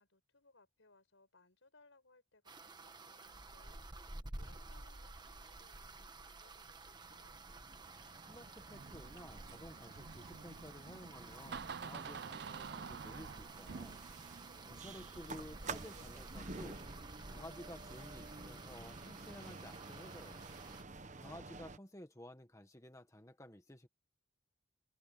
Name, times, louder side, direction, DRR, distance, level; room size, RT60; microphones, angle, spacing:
voice 1, 0.0-7.4 14.6-15.3, left 3 dB, 85° left, 5.0 m, -69 dB
sound 1, 2.4-20.8, right 2 dB, 20° right, 1.3 m, -52 dB
sound 2, 6.7-21.8, right 3 dB, 40° right, 1.1 m, -52 dB
voice 2, 8.3-14.0 14.6-16.8 17.2-20.4 21.2-23.9, left 1 dB, 15° left, 1.5 m, -53 dB
Door, 8.7-16.4, right 6 dB, 55° right, 0.5 m, -50 dB
head